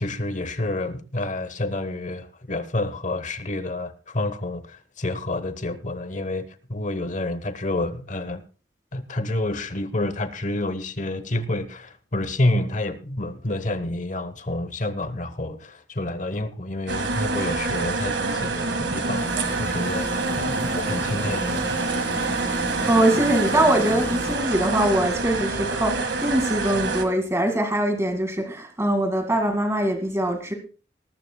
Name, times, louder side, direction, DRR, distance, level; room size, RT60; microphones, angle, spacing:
voice 1, 0.0-8.4 8.9-21.6, left 2 dB, 45° left, 1.1 m, -29 dB
sound 1, 16.9-27.0, right 3 dB, 80° right, 1.8 m, -26 dB
sound 2, 19.2-24.3, equal, 15° left, 1.8 m, -34 dB
voice 2, 22.6-30.5, right 1 dB, 15° right, 2.2 m, -23 dB
19.5 x 14.0 x 2.3 m
head